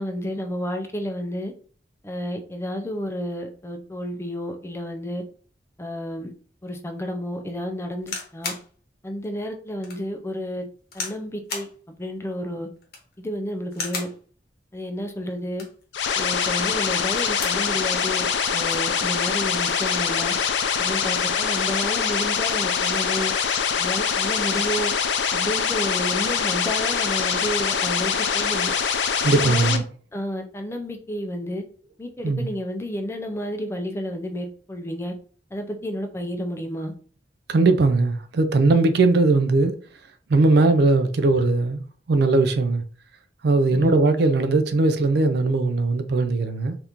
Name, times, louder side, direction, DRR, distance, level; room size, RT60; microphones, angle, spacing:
voice 1, 0.0-1.5 2.0-5.2 5.8-6.3 6.6-8.5 9.0-10.7 10.9-11.7 12.0-12.7 13.2-14.1 14.7-15.7 16.1-20.3 20.8-23.3 23.8-24.9 25.3-28.7 29.3-29.8 30.1-31.6 32.0-35.1 35.5-36.9 43.7-44.0, equal, 15° left, 0.4 m, -31 dB
sound 1, 8.0-8.7 9.2-9.3 9.8-10.0 10.9-11.2 11.5-11.7 12.8-13.2 13.7-14.2 15.4-15.8 17.0-17.7 18.1-18.2 18.4-18.9 19.7-20.0, left 4 dB, 60° left, 0.9 m, -34 dB
sound 2, 15.9-29.8, left 7 dB, 80° left, 0.4 m, -24 dB
voice 2, 29.2-29.8 32.2-32.5 37.5-39.7 40.3-41.8 42.1-42.8 43.4-46.8, right 3 dB, 65° right, 0.4 m, -19 dB
2.9 x 2.5 x 3.5 m
head